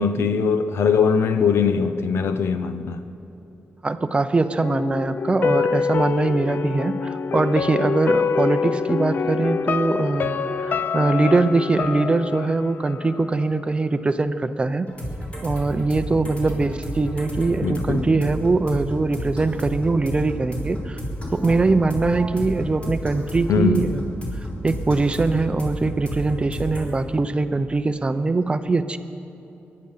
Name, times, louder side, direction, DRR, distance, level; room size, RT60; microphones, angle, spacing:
voice 1, 0.0-3.0 17.6-18.1 23.5-23.9, left 6 dB, 90° left, 0.8 m, -21 dB
voice 2, 3.8-14.9 15.4-21.0 21.3-24.1 24.6-29.0, right 3 dB, 25° right, 0.6 m, -22 dB
sound 1, 4.6-13.6 13.9-14.0, left 5 dB, 50° left, 0.4 m, -25 dB
sound 2, 14.9-26.9, equal, 30° left, 3.8 m, -32 dB
22.5 x 11.0 x 5.6 m
wide cardioid pair, 120°, 4 cm